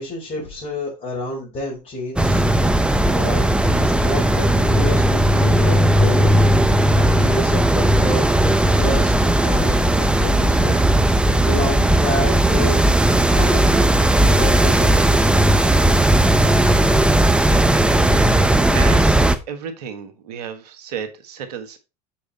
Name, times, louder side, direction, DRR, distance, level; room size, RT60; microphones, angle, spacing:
voice 1, 0.0-2.4 3.1-6.5 7.0-8.3 8.8-10.8 11.4-12.8 13.3-15.1, left 1 dB, 40° left, 4.6 m, -29 dB
sound 1, 2.2-19.4, right 1 dB, 5° right, 0.8 m, -16 dB
sound 2, 10.0-18.3, right 1 dB, 25° right, 1.5 m, -27 dB
voice 2, 18.7-19.2 19.5-21.8, right 7 dB, 80° right, 1.4 m, -32 dB
7.5 x 4.9 x 4.1 m
hypercardioid pair, 90°, 20 cm